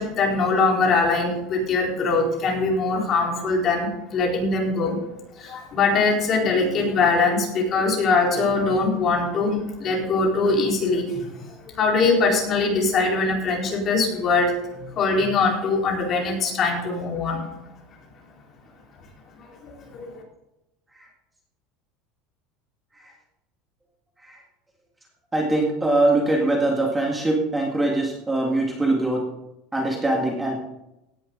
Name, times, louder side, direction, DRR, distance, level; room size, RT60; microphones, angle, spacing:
voice 1, 0.0-5.0 5.4-14.5 15.0-17.4 19.6-20.2, left 3 dB, 30° left, -1 dB, 4.1 m, -22 dB
voice 2, 25.3-29.2 29.7-30.6, right 2 dB, 10° right, 0 dB, 1.9 m, -22 dB
17.0 x 10.5 x 3.9 m, 0.92 s
cardioid pair, 155°, 0 cm